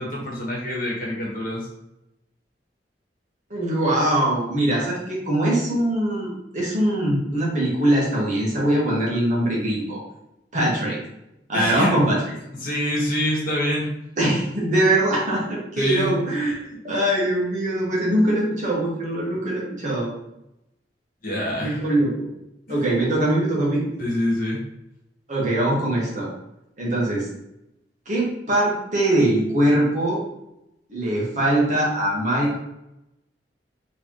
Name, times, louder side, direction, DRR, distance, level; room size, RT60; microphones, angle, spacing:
voice 1, 0.0-1.7 11.5-11.9 12.6-13.9 15.8-16.1 21.2-21.8 24.0-24.6, left 1 dB, 55° left, -4 dB, 1.4 m, -25 dB
voice 2, 3.5-10.0 10.5-11.0 11.5-12.2 14.2-20.1 21.6-22.3 22.7-23.9 25.3-26.3 26.8-27.3 28.1-30.2 30.9-32.6, right 1 dB, 45° right, -5 dB, 1.5 m, -22 dB
4.1 x 3.4 x 3.1 m, 0.86 s
head